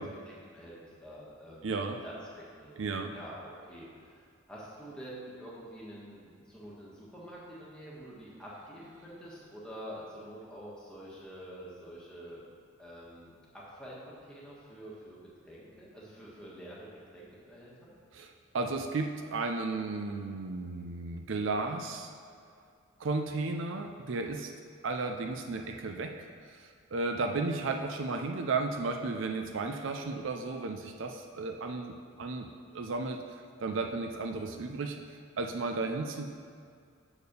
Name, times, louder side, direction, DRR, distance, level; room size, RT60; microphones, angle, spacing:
voice 1, 0.0-2.8 3.1-12.4 12.8-15.2 15.4-17.9 35.8-35.9, equal, 5° left, -7 dB, 1.5 m, -47 dB
voice 2, 1.6-2.0 2.8-3.1 18.1-22.1 23.0-24.5 24.8-33.2 33.6-35.0 35.4-36.3, right 3 dB, 65° right, 4 dB, 0.5 m, -34 dB
6.6 x 4.3 x 6.7 m, 2.3 s
head